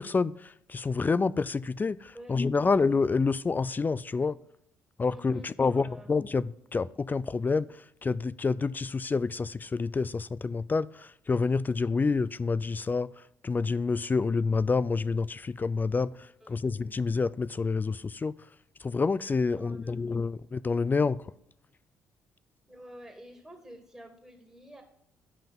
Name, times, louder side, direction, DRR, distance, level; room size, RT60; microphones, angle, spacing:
voice 1, 0.0-4.4 5.0-18.3 18.8-21.3, left 4 dB, 25° left, 0.4 m, -28 dB
voice 2, 5.1-6.2 16.4-16.8 19.5-20.0 22.7-24.8, equal, 5° right, 2.2 m, -49 dB
11.0 x 5.6 x 5.3 m
hypercardioid pair, 50°, 7 cm